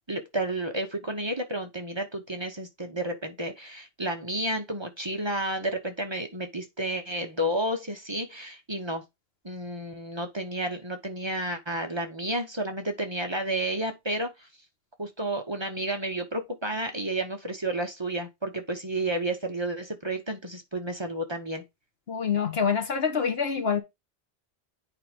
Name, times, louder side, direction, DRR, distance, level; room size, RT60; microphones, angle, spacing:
voice 1, 0.1-9.0 9.4-14.3 15.0-21.6, right 1 dB, 25° right, 1.1 m, -31 dB
voice 2, 22.1-23.8, left 6 dB, 75° left, 1.6 m, -26 dB
8.8 x 4.8 x 3.6 m
omnidirectional pair, 1.1 m